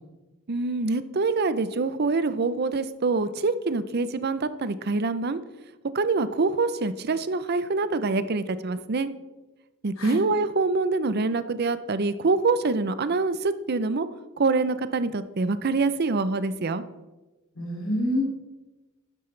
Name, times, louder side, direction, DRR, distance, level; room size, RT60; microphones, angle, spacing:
voice 1, 0.5-5.4 5.9-9.1 9.8-14.1 14.4-16.8, right 3 dB, 50° right, 13 dB, 0.6 m, -25 dB
voice 2, 17.6-18.2, left 1 dB, 85° left, -1 dB, 3.7 m, -27 dB
12.5 x 9.8 x 3.3 m, 1.1 s
head